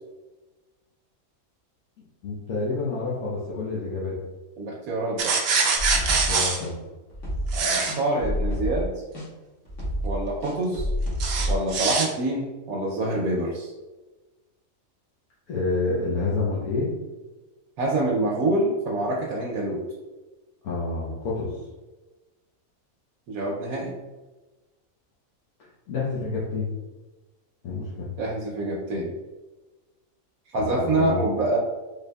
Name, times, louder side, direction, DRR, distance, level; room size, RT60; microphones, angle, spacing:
voice 1, 2.2-4.1 6.0-6.8 15.5-16.9 20.6-21.6 25.9-26.7 27.6-28.1 30.6-31.2, left 3 dB, 85° left, -8 dB, 1.3 m, -28 dB
voice 2, 4.6-5.4 7.5-8.9 10.0-10.9 11.5-13.7 17.8-19.8 23.3-24.0 28.2-29.1 30.5-31.6, right 2 dB, 90° right, -3 dB, 1.1 m, -26 dB
sound 1, 5.2-6.6 7.5-7.9 11.2-12.1, right 4 dB, 60° right, 0.7 m, -23 dB
sound 2, 5.8-6.3 6.6-6.7 7.1-7.6 7.9-8.8 9.1-9.3 9.7-11.6, equal, 60° left, 1.5 m, -28 dB
4.1 x 3.4 x 2.2 m, 1.2 s
omnidirectional pair, 1.5 m